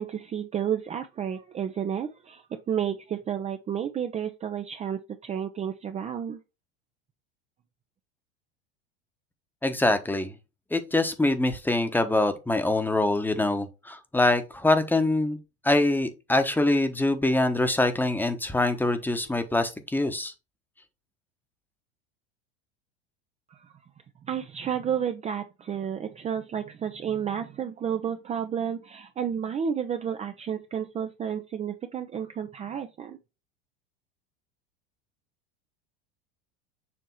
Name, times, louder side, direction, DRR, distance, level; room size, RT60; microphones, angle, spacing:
voice 1, 0.0-6.4 24.3-33.2, right 8 dB, 20° right, 0.5 m, -31 dB
voice 2, 9.6-10.3 10.7-15.4 15.6-20.3, left 2 dB, 5° left, 1.0 m, -24 dB
7.1 x 2.9 x 4.5 m
hypercardioid pair, 95°, 29 cm